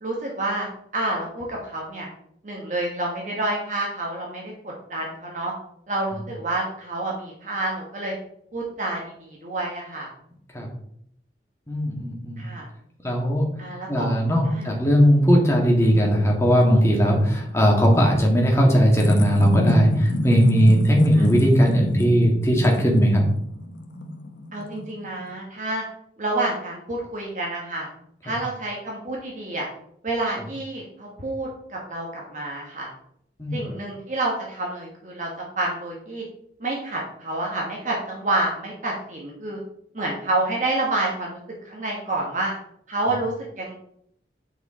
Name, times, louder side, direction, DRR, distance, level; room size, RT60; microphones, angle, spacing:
voice 1, 0.0-0.7 0.9-2.1 2.4-5.5 5.9-8.1 8.5-10.1 12.4-12.6 13.6-14.1 14.5-14.7 21.1-21.2 24.5-25.8 26.2-27.9 28.2-29.7 30.0-32.9 33.5-35.3 35.6-36.2 36.6-39.6 39.9-41.4 41.6-42.5 42.9-43.7, right 2 dB, 45° right, -2 dB, 1.4 m, -28 dB
voice 2, 11.7-12.4 13.0-13.4 13.9-23.2 28.3-28.4 33.4-33.6, equal, 15° left, -1 dB, 1.8 m, -18 dB
sound 1, 15.2-25.3, left 1 dB, 85° left, 1.0 m, -30 dB
9.0 x 4.8 x 4.3 m, 0.71 s
head